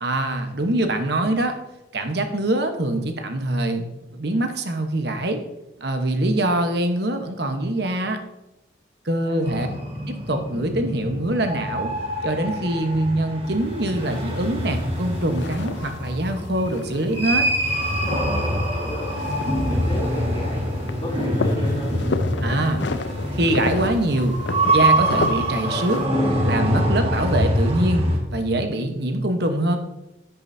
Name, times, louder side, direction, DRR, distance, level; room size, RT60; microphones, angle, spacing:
voice 1, 0.0-1.6 1.9-3.9 4.1-5.4 5.8-8.2 9.0-9.7 10.1-11.9 12.2-17.5 22.4-22.8 23.3-24.4 24.7-26.0 26.4-29.8, right 1 dB, 55° right, 6 dB, 1.1 m, -24 dB
voice 2, 9.2-9.8 18.5-19.1 19.7-21.9, left 1 dB, 25° left, -5 dB, 2.7 m, -34 dB
sound 1, 9.5-28.2, right 1 dB, 30° right, 1.6 m, -25 dB
sound 2, 13.5-26.1, left 3 dB, 65° left, 0.5 m, -33 dB
10.0 x 9.4 x 2.7 m, 0.95 s
head